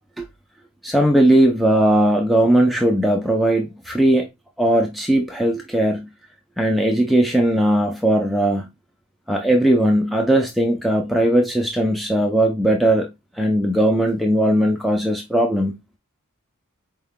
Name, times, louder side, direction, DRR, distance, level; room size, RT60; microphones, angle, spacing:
voice 1, 0.8-4.3 4.6-6.1 6.6-8.7 9.3-13.1 13.4-15.8, right 1 dB, ahead, 0.4 m, -18 dB
4.4 x 2.2 x 3.5 m
head